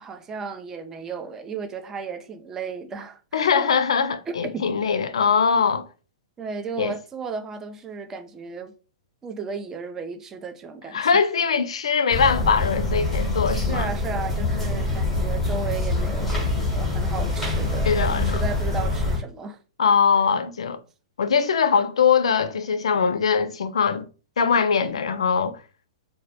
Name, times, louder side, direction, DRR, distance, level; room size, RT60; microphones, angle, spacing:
voice 1, 0.0-3.7 4.3-4.8 6.4-8.7 9.2-11.0 13.5-19.6, right 5 dB, 15° right, 0.3 m, -34 dB
voice 2, 3.3-5.9 6.8-6.9 10.9-13.9 17.8-18.4 19.8-20.8 21.2-24.0 24.4-25.6, left 6 dB, 85° left, 0.3 m, -21 dB
sound 1, 12.1-19.2, left 2 dB, 5° left, 0.9 m, -25 dB
2.1 x 2.0 x 2.8 m
hypercardioid pair, 140°, 3 cm